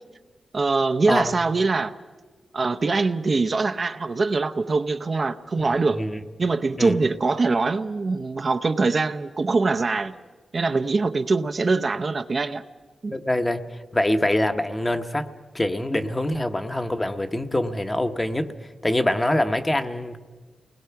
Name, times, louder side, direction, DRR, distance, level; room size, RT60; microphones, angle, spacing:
voice 1, 0.5-1.9 2.5-6.0 6.4-10.1 10.5-12.6 13.0-13.1, right 3 dB, 40° right, 0.7 m, -23 dB
voice 2, 5.6-6.2 6.8-7.1 13.1-13.6 13.9-15.3 15.5-18.5 18.8-20.2, left 1 dB, 15° left, 1.0 m, -24 dB
29.0 x 20.0 x 5.8 m
wide cardioid pair, 110°, 0 cm